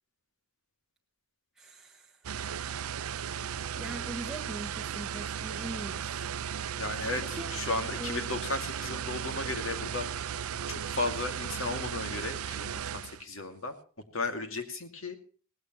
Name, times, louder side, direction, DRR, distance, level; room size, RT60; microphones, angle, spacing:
voice 1, 1.6-2.3 3.7-6.3 7.2-7.5 7.9-8.2, right 1 dB, ahead, -1 dB, 1.1 m, -42 dB
sound 1, 2.2-13.2, right 8 dB, 80° right, 0.6 m, -36 dB
voice 2, 6.8-10.3 10.7-13.7 14.1-15.2, left 3 dB, 65° left, 6 dB, 2.4 m, -35 dB
18.0 x 16.5 x 3.1 m, 0.42 s
head